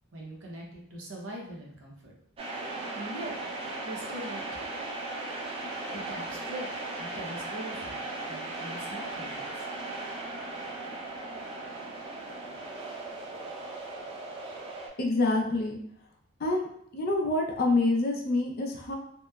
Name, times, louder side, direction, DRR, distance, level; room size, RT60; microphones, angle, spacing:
voice 1, 0.1-2.1 2.9-3.3 3.8-4.4 5.9-6.7 7.0-9.7, right 1 dB, 65° right, -2 dB, 0.7 m, -42 dB
sound 1, 2.4-14.9, right 2 dB, 30° right, 0.3 m, -37 dB
voice 2, 15.0-15.8 16.4-16.7 16.9-19.0, left 2 dB, 50° left, 1 dB, 0.4 m, -26 dB
2.8 x 2.1 x 2.2 m, 0.67 s
head